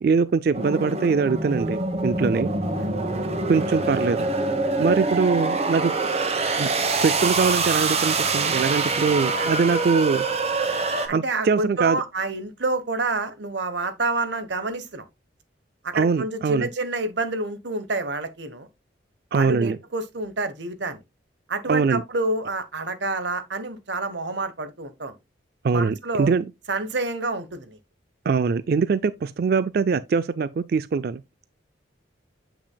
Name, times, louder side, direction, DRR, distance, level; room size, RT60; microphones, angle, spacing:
voice 1, 0.0-2.5 3.5-4.3 4.8-5.9 6.6-6.7 7.0-10.2 11.1-12.0 15.9-16.7 19.3-19.8 21.7-22.0 25.6-26.4 28.3-31.2, right 5 dB, 50° right, 0.3 m, -22 dB
sound 1, 0.5-11.1, right 3 dB, 35° right, 1.0 m, -25 dB
voice 2, 11.1-15.0 15.8-18.7 19.3-21.0 21.5-25.1 25.7-26.3 26.7-27.8, right 3 dB, 65° right, 1.1 m, -28 dB
8.4 x 6.0 x 2.2 m
head